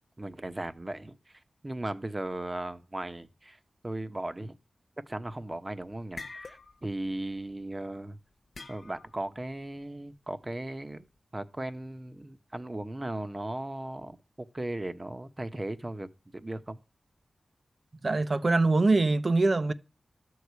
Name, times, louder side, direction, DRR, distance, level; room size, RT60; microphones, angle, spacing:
voice 1, 0.2-4.5 5.1-8.2 8.7-11.0 11.3-16.8, right 1 dB, 25° right, 1.0 m, -37 dB
sound 1, 5.5-5.6 5.9-7.0 7.3-7.5 8.5-9.2, left 3 dB, 60° left, 1.1 m, -45 dB
voice 2, 18.0-19.7, right 3 dB, 45° right, 0.8 m, -23 dB
13.0 x 4.9 x 8.2 m
cardioid pair, 60°, 0 cm